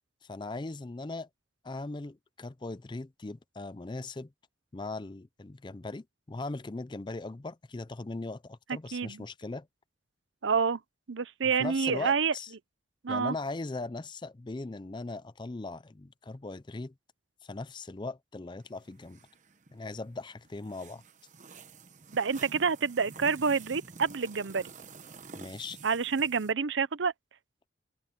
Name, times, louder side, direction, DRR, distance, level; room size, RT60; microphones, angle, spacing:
voice 1, 0.3-1.3 1.6-4.3 4.7-9.7 11.6-12.5 13.1-16.9 17.4-19.2 19.7-21.0 25.3-25.8, left 2 dB, 25° left, 0.4 m, -39 dB
voice 2, 8.9-9.2 10.4-10.8 11.1-12.3 13.0-13.3 22.1-24.7 25.8-27.1, right 5 dB, 75° right, 0.7 m, -28 dB
sound 1, 18.6-26.5, right 4 dB, 40° right, 1.1 m, -50 dB
head